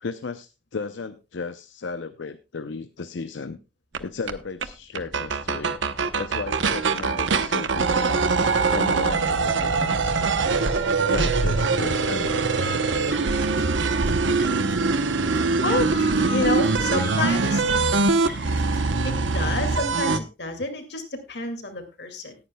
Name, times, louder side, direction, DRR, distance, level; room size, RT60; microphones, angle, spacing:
voice 1, 0.0-3.6 4.0-5.8 6.2-8.2 8.7-10.2 11.1-12.7 13.8-14.2, left 4 dB, 85° left, 10 dB, 0.6 m, -35 dB
sound 1, 3.9-4.0 4.3-4.4 4.6-4.7 5.0-20.2, right 4 dB, 90° right, 0.9 m, -23 dB
sound 2, 9.3-15.7, equal, 30° right, 7.8 m, -41 dB
sound 3, 13.1-13.6 13.9-14.1 14.4-14.8 15.3-16.2 16.5-16.7 17.0-17.5 17.9-18.8, equal, 10° right, 4.4 m, -42 dB
voice 2, 16.3-17.7 19.0-22.3, left 2 dB, 65° left, 6 dB, 2.4 m, -29 dB
18.5 x 9.6 x 2.3 m, 0.27 s
head